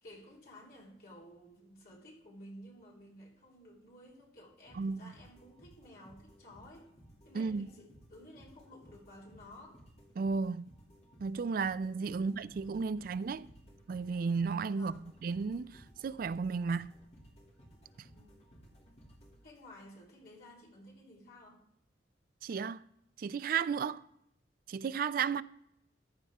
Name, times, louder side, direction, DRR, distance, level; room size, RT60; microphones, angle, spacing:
voice 1, 0.0-6.9 7.2-9.8 12.1-12.3 12.9-13.0 14.7-15.1 18.1-18.3 19.4-21.6, left 1 dB, 55° left, 3.7 m, -54 dB
sound 1, 4.7-19.9, equal, 35° left, 2.6 m, -59 dB
voice 2, 4.7-5.1 7.3-7.7 10.2-10.6 11.2-13.5 13.9-16.9 18.0-18.1 22.4-22.9 23.2-24.0 24.7-25.4, right 5 dB, 50° right, 0.3 m, -34 dB
14.5 x 10.5 x 3.6 m
head